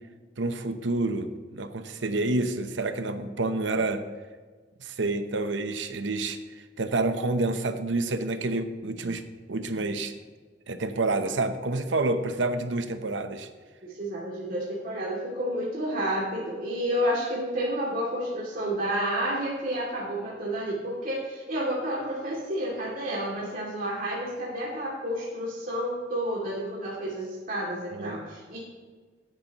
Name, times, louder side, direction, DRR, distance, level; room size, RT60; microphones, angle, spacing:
voice 1, 0.4-4.0 4.8-9.2 9.5-10.1 10.7-13.5 27.9-28.2, right 2 dB, 75° right, 9 dB, 0.8 m, -28 dB
voice 2, 13.8-28.6, equal, 50° right, -6 dB, 2.6 m, -30 dB
16.5 x 9.5 x 3.0 m, 1.4 s
head